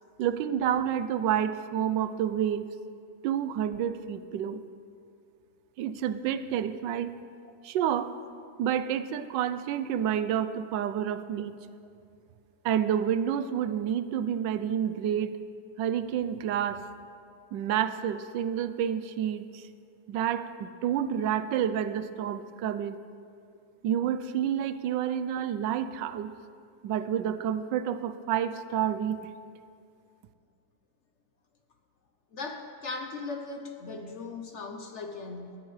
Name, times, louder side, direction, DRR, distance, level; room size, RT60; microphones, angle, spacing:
voice 1, 0.2-2.7 3.2-4.6 5.8-7.1 7.6-8.1 8.6-11.6 12.6-15.4 15.8-16.8 17.5-19.6 20.1-23.0 23.8-26.3 26.8-29.2, right 9 dB, 90° right, 12 dB, 1.3 m, -29 dB
voice 2, 32.3-35.6, left 3 dB, 50° left, 4 dB, 0.9 m, -38 dB
18.5 x 13.5 x 3.2 m, 2.4 s
omnidirectional pair, 1.9 m